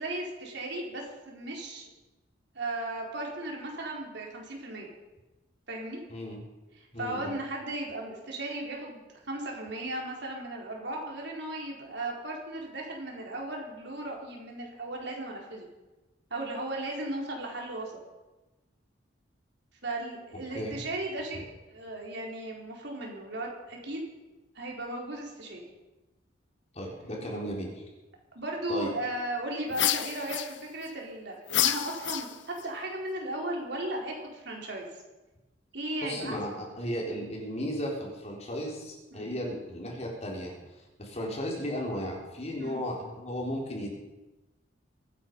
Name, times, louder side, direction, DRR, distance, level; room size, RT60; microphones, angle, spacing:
voice 1, 0.0-1.9 2.5-4.9 5.7-6.0 7.0-15.7 16.3-17.9 19.8-24.1 24.5-25.6 28.3-34.9 35.7-36.4 39.1-39.3 42.6-42.9, right 1 dB, 65° right, -1 dB, 4.3 m, -36 dB
voice 2, 6.1-6.4 6.9-7.4 20.5-20.8 26.7-27.8 28.7-28.9 36.0-40.5 41.0-44.0, equal, 35° left, -1 dB, 3.9 m, -35 dB
sound 1, 29.7-30.9 31.5-32.7, left 12 dB, 70° left, 0.7 m, -29 dB
23.5 x 10.0 x 5.4 m, 1.1 s
head